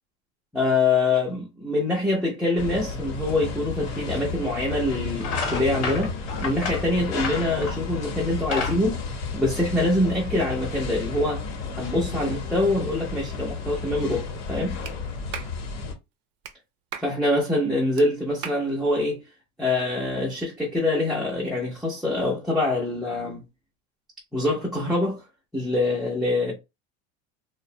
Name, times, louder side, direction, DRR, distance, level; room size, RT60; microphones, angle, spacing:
voice 1, 0.5-6.1 6.4-9.0 9.3-11.4 11.8-14.8 17.0-19.2 19.6-23.4 24.3-25.2 25.5-26.5, left 2 dB, ahead, 0.3 m, -25 dB
sound 1, 2.6-15.9, left 4 dB, 70° left, 0.9 m, -32 dB
sound 2, 4.6-4.8 5.2-7.9 8.3-9.9, left 4 dB, 45° left, 1.0 m, -31 dB
Clapping, 14.8-15.0 15.3-15.5 16.4-16.6 16.9-17.1 18.0-18.1 18.4-18.6, right 9 dB, 65° right, 0.6 m, -36 dB
2.5 x 2.1 x 2.6 m
supercardioid pair, 145°, 35 cm